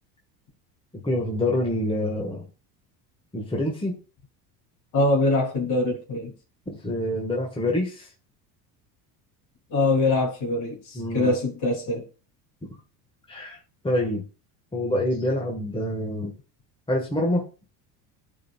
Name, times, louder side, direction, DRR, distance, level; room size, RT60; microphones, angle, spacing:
voice 1, 0.9-2.5 3.3-4.0 6.7-8.1 10.9-11.3 13.3-13.6 13.8-14.2 14.7-16.3 16.9-17.4, left 1 dB, 10° left, -1 dB, 1.7 m, -26 dB
voice 2, 4.9-6.3 9.7-12.0, left 2 dB, 55° left, 1 dB, 3.7 m, -23 dB
12.0 x 4.7 x 2.4 m, 0.34 s
supercardioid pair, 95°, 47 cm